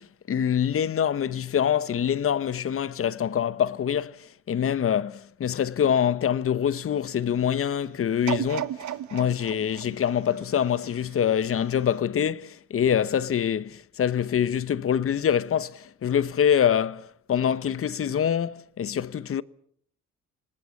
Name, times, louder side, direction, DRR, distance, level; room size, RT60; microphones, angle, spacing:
voice 1, 0.0-8.7 9.1-19.4, left 9 dB, 45° left, 1.0 m, -25 dB
sound 1, 8.3-11.3 11.9-12.0, right 11 dB, 70° right, 1.3 m, -34 dB
26.5 x 19.0 x 7.2 m
cardioid pair, 90°, 30 cm